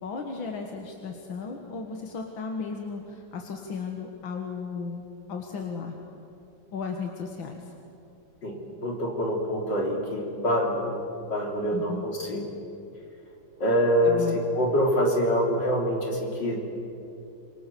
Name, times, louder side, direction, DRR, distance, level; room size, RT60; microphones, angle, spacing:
voice 1, 0.0-5.0 5.3-6.0 6.7-7.6 11.7-12.0 14.0-14.4, left 5 dB, 90° left, 3 dB, 2.4 m, -35 dB
voice 2, 8.8-11.0 11.3-12.5 13.6-16.6, equal, 65° left, 0 dB, 4.0 m, -25 dB
27.5 x 23.5 x 7.0 m, 2.8 s
omnidirectional pair, 2.1 m